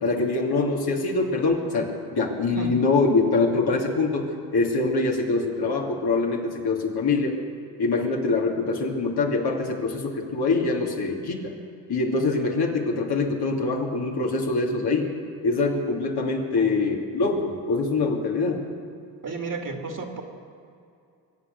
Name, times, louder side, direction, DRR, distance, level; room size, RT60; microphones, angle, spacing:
voice 1, 0.0-7.3 7.8-11.5 11.9-15.1 15.4-18.6, left 3 dB, 65° left, 0 dB, 2.7 m, -24 dB
voice 2, 19.2-20.2, right 4 dB, 45° right, 3 dB, 2.4 m, -32 dB
23.0 x 8.3 x 6.7 m, 2.5 s
supercardioid pair, 50°, 42 cm